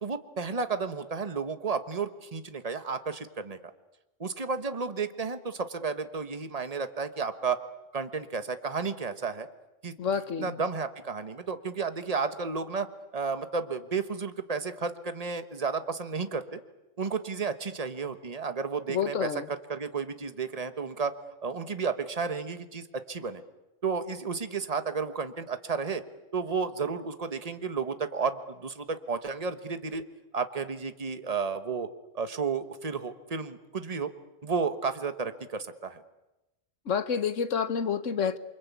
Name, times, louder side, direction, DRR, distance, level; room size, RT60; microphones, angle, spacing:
voice 1, 0.0-3.6 4.2-7.6 7.9-9.5 9.8-9.9 10.4-12.9 13.1-16.6 17.0-19.3 19.7-21.1 21.4-23.4 23.8-26.0 26.3-30.0 30.3-31.9 32.1-34.1 34.4-36.0, right 5 dB, 30° right, 9 dB, 1.4 m, -32 dB
voice 2, 10.0-10.6 18.9-19.5 36.9-38.4, left 6 dB, 90° left, 12 dB, 1.6 m, -29 dB
28.0 x 24.5 x 8.4 m, 0.99 s
omnidirectional pair, 1.2 m